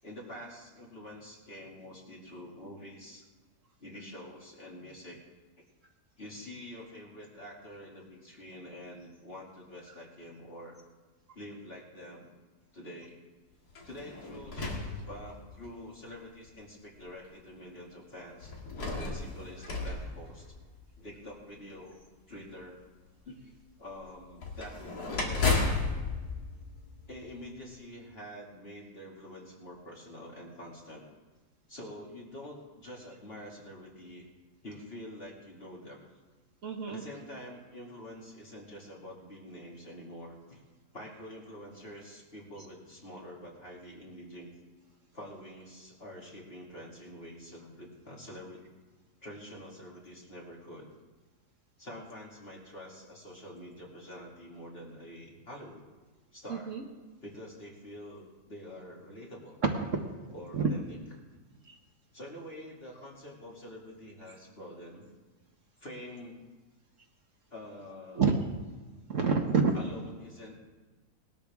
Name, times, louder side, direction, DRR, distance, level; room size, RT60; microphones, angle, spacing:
voice 1, 0.0-3.2 3.8-5.2 6.2-10.8 11.3-12.3 12.7-13.2 13.8-18.5 19.0-20.5 21.0-22.0 22.3-22.8 23.2-23.5 23.8-25.5 27.1-31.0 31.7-34.3 34.6-36.0 36.9-40.6 40.9-44.5 45.1-48.7 49.2-50.9 51.8-55.8 56.3-56.7 57.2-59.6 60.3-61.0 62.1-65.1 65.8-66.4 67.5-68.3 69.7-70.6, left 1 dB, 35° left, -3 dB, 2.7 m, -46 dB
sound 1, 13.7-15.7 16.5-16.6 18.4-21.0 24.4-27.5, left 3 dB, 70° left, 2.3 m, -34 dB
voice 2, 36.6-37.0 56.7-56.8 59.6-60.0 60.5-60.7 61.7-61.8 68.1-68.3 69.1-69.7, right 5 dB, 55° right, 2 dB, 1.4 m, -27 dB
19.5 x 12.5 x 3.6 m, 1.3 s
omnidirectional pair, 1.7 m